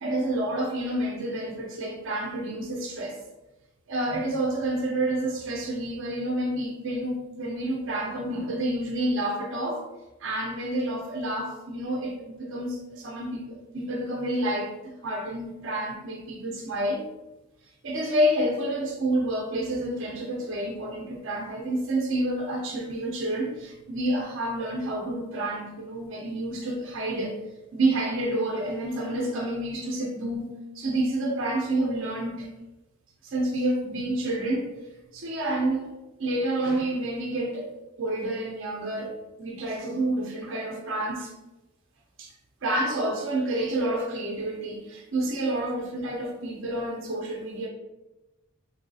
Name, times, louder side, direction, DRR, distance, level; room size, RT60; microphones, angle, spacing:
voice 1, 0.0-3.2 3.9-9.9 10.2-14.7 15.0-17.0 17.8-27.4 27.7-32.5 33.2-34.7 35.1-35.9 36.2-37.7 38.0-39.1 39.4-41.3 42.2-42.3 42.6-47.7, right 1 dB, 60° right, -1 dB, 0.6 m, -29 dB
3.0 x 2.7 x 2.6 m, 1.0 s
head